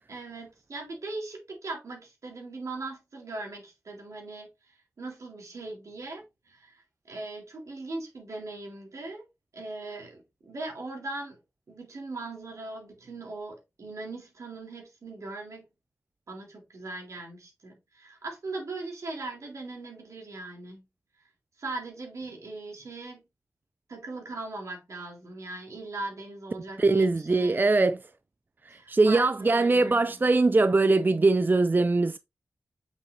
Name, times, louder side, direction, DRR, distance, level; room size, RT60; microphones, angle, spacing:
voice 1, 0.1-4.5 5.0-9.2 9.5-11.4 11.7-15.7 16.3-20.8 21.6-23.2 23.9-27.7 28.7-30.2, right 2 dB, 75° right, 3.8 m, -39 dB
voice 2, 26.8-28.0 28.7-32.2, right 3 dB, 35° right, 0.5 m, -22 dB
7.3 x 6.9 x 2.8 m
cardioid pair, 40°, 5 cm